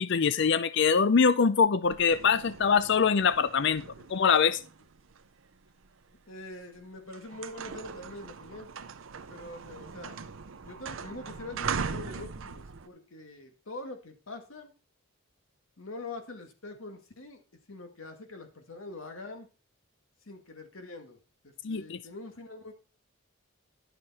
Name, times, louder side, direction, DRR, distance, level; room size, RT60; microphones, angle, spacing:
voice 1, 0.0-3.8 4.1-4.6 21.6-22.0, left 6 dB, 60° left, 15 dB, 0.5 m, -23 dB
sound 1, 1.8-6.0 6.6-6.8 7.1-12.9, right 5 dB, 70° right, 0.6 m, -40 dB
voice 2, 6.3-8.7 9.3-10.2 10.6-14.7 15.8-17.4 17.7-19.5 20.2-21.2 21.4-22.7, left 2 dB, 80° left, 5 dB, 1.9 m, -44 dB
11.0 x 6.7 x 4.1 m, 0.34 s
head